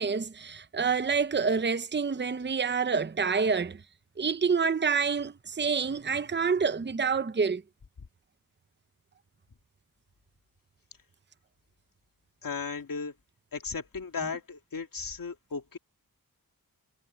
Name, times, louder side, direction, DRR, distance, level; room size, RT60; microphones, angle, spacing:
voice 1, 0.0-3.8 4.2-7.6, right 5 dB, 30° right, 0.8 m, -27 dB
voice 2, 12.4-13.2 13.5-15.8, left 5 dB, 65° left, 2.4 m, -36 dB
cardioid pair, 55°, 36 cm